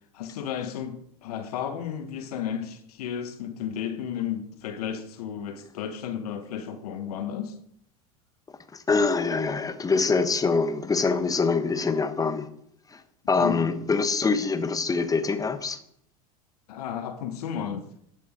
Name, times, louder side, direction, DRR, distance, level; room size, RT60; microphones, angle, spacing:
voice 1, 0.1-7.5 13.4-13.7 16.7-17.9, left 9 dB, 80° left, 1.3 m, -33 dB
voice 2, 8.7-12.5 12.9-13.0 13.3-15.8, left 4 dB, 20° left, 1.1 m, -24 dB
11.5 x 6.9 x 5.1 m
hypercardioid pair, 90°, 19 cm